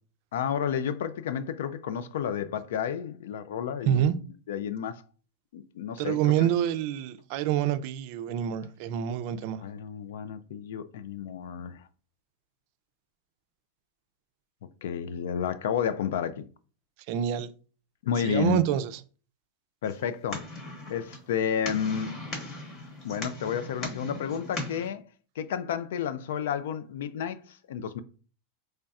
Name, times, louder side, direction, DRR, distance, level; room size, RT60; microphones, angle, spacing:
voice 1, 0.3-5.0 5.5-6.5 9.6-11.8 14.8-16.5 18.0-18.6 19.8-20.4 20.9-22.1 23.0-25.0 25.4-28.0, left 8 dB, 80° left, 0.3 m, -31 dB
voice 2, 6.0-9.6 17.1-17.5 18.2-18.9, right 11 dB, 50° right, 0.4 m, -27 dB
sound 1, 19.8-24.9, left 2 dB, 35° left, 1.1 m, -39 dB
4.0 x 3.2 x 2.4 m
supercardioid pair, 150°, 0 cm